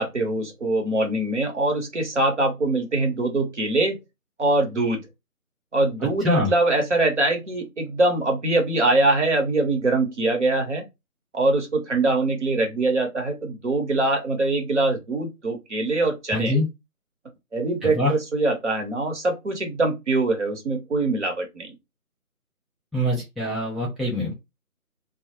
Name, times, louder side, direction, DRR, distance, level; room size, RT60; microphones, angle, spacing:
voice 1, 0.0-4.0 4.4-5.0 5.7-10.8 11.3-16.5 17.5-21.7, right 2 dB, 50° right, 0.8 m, -23 dB
voice 2, 16.3-16.7 17.8-18.1 22.9-24.4, left 1 dB, ahead, 0.4 m, -24 dB
2.0 x 2.0 x 2.9 m
figure-of-eight pair, 165°, 45 cm